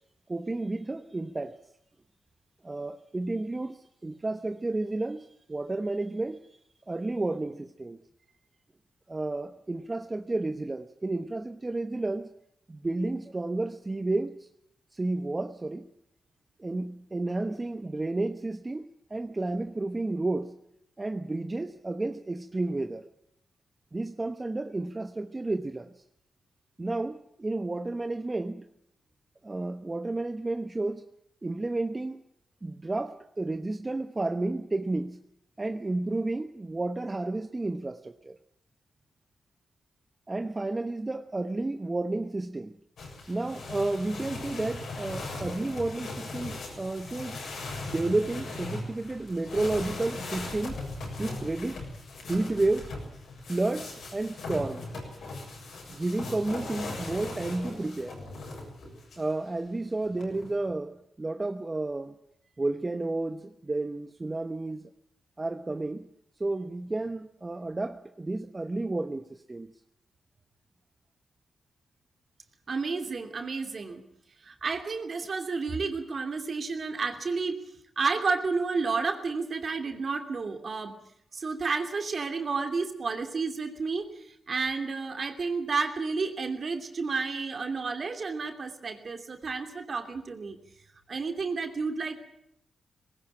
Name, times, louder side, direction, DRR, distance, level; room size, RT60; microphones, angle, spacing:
voice 1, 0.3-1.6 2.6-6.4 6.9-8.0 9.1-12.3 12.7-14.5 14.9-15.9 16.6-20.5 21.0-23.1 23.9-25.9 26.8-28.6 29.4-31.0 31.4-32.2 32.6-35.2 35.6-38.4 40.3-42.7 43.3-47.4 47.8-50.8 51.2-51.9 52.3-52.9 53.5-54.9 55.9-58.2 59.2-62.1 62.6-64.9 65.4-66.1 66.4-69.7, right 2 dB, 30° right, 1.0 m, -31 dB
sound 1, 43.0-59.3 60.0-60.7, left 2 dB, 80° left, 7.0 m, -39 dB
voice 2, 72.7-74.0 74.4-77.7 78.0-80.9 81.3-90.6 91.1-92.1, right 4 dB, 55° right, 2.8 m, -31 dB
19.5 x 17.5 x 8.8 m
cardioid pair, 55°, 0 cm